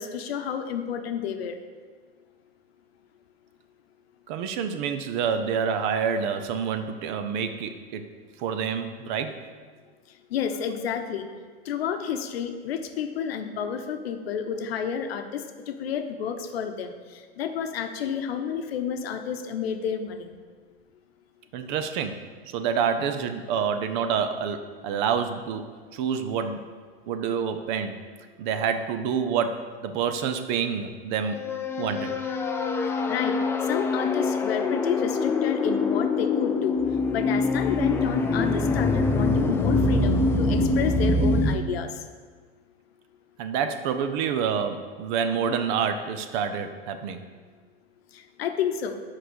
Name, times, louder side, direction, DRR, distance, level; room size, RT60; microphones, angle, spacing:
voice 1, 0.0-1.6 10.3-11.3 11.6-20.4 33.1-33.4 33.7-36.8 37.1-42.0 48.1-49.0, left 7 dB, 75° left, 7 dB, 0.8 m, -30 dB
voice 2, 4.3-8.0 8.4-9.4 21.5-26.6 27.1-28.0 28.4-31.4 31.8-32.2 43.4-47.2, right 7 dB, 55° right, 9 dB, 0.7 m, -28 dB
sound 1, 31.3-41.6, left 3 dB, 10° left, 0.3 m, -24 dB
5.9 x 4.9 x 6.3 m, 1.5 s
hypercardioid pair, 115°, 30 cm